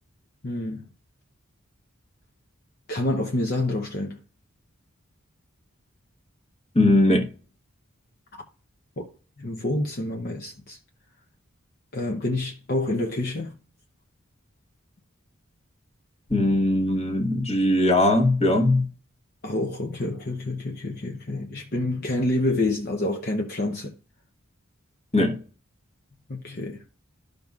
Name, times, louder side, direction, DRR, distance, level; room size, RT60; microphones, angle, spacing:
voice 1, 0.4-0.9 2.9-4.2 8.3-8.4 9.0-9.1 9.4-10.8 11.9-13.6 19.4-23.9 26.3-26.8, left 2 dB, 45° left, 0.7 m, -28 dB
voice 2, 6.7-7.3 16.3-18.9 25.1-25.4, left 1 dB, 30° left, 1.2 m, -20 dB
13.5 x 5.2 x 2.4 m
head